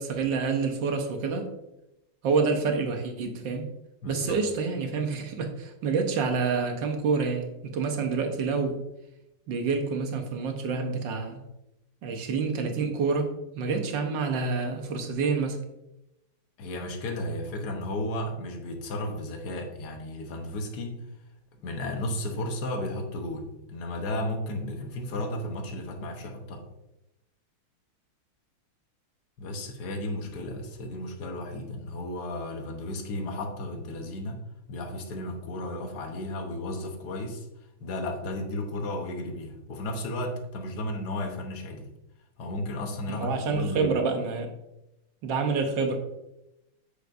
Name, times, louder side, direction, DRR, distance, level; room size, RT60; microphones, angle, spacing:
voice 1, 0.0-1.5 2.2-3.7 4.0-8.8 9.5-11.4 12.0-15.6 43.1-44.5 45.2-46.0, right 4 dB, 65° right, 5 dB, 1.6 m, -28 dB
voice 2, 4.0-4.4 16.6-21.0 21.6-26.6 29.4-34.4 34.7-37.5 37.8-41.9 42.4-43.9, left 1 dB, 55° left, 4 dB, 1.4 m, -34 dB
8.0 x 6.5 x 2.6 m, 0.90 s
omnidirectional pair, 2.3 m